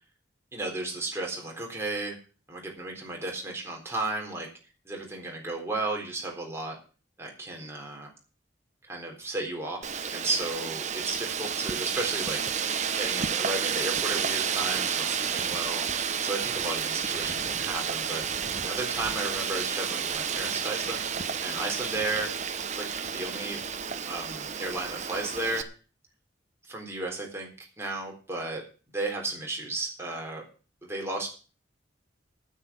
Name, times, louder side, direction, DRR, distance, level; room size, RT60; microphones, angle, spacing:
voice 1, 0.5-2.2 2.5-4.5 4.8-6.8 7.2-8.1 8.9-12.4 12.9-15.8 16.2-21.1 21.4-22.3 22.7-23.6 24.1-25.7 26.7-28.7 28.9-30.4 30.8-31.3, right 2 dB, 15° right, 0 dB, 3.8 m, -34 dB
Wind, 9.8-25.6, right 7 dB, 40° right, 0.9 m, -31 dB
9.5 x 8.4 x 8.7 m, 0.37 s
head